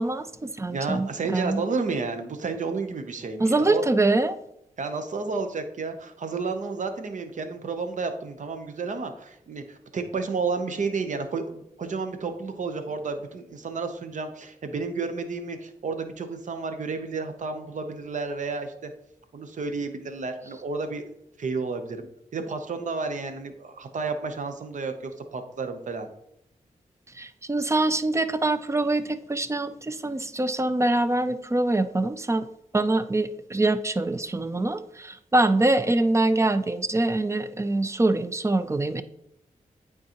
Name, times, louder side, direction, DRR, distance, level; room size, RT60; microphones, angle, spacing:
voice 1, 0.0-1.6 3.4-4.4 27.2-32.5 32.7-39.0, right 2 dB, 20° right, 11 dB, 0.4 m, -24 dB
voice 2, 0.7-3.8 4.8-18.9 19.3-21.1 21.4-22.1 22.3-26.1, right 4 dB, 60° right, 7 dB, 0.8 m, -31 dB
8.9 x 3.7 x 2.9 m, 0.78 s
cardioid pair, 65°, 14 cm